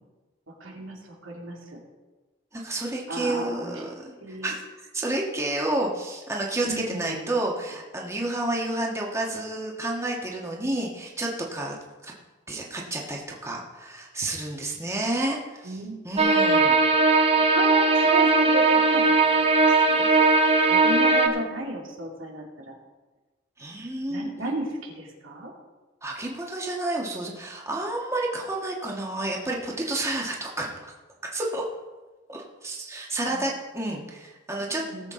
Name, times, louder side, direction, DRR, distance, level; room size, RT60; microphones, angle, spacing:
voice 1, 0.5-1.8 3.1-3.7 4.2-4.5 6.6-7.3 15.6-16.1 17.5-20.3 20.7-22.7 24.1-25.5 33.2-33.4 34.8-35.1, right 1 dB, 90° right, -1 dB, 2.7 m, -34 dB
voice 2, 2.5-4.6 4.9-11.7 12.0-12.1 12.5-15.8 16.0-16.8 23.6-24.3 26.0-30.9 31.3-31.6 32.3-34.8 35.0-35.1, right 2 dB, 15° right, -1 dB, 1.4 m, -30 dB
sound 1, 16.2-21.3, right 3 dB, 30° right, 1.0 m, -19 dB
18.5 x 7.5 x 3.8 m, 1.2 s
head